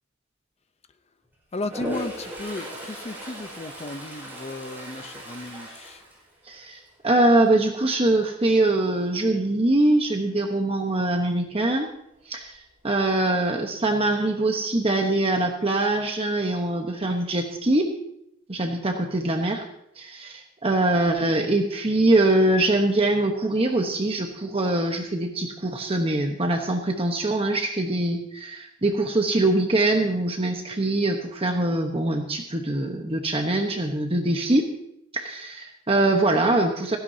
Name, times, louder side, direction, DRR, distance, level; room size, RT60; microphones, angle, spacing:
voice 1, 1.5-6.1, left 2 dB, 30° left, 10 dB, 0.7 m, -35 dB
Toilet flush, 1.6-6.8 7.2-7.6 12.0-12.1 12.4-13.2, equal, 10° right, 5.1 m, -37 dB
voice 2, 6.4-11.9 12.2-17.9 18.5-19.7 19.9-34.7 35.1-37.0, right 2 dB, 25° right, 3 dB, 1.1 m, -23 dB
16.5 x 15.5 x 2.8 m, 0.78 s
head